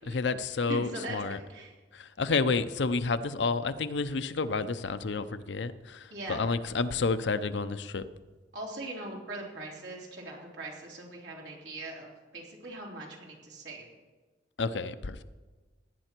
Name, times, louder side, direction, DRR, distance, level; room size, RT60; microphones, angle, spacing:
voice 1, 0.0-1.4 1.9-8.0 14.6-15.2, left 4 dB, 75° left, 12 dB, 0.6 m, -30 dB
voice 2, 0.7-1.7 6.1-6.4 8.5-13.9, right 2 dB, 70° right, -2 dB, 3.5 m, -41 dB
17.5 x 10.0 x 4.5 m, 1.3 s
head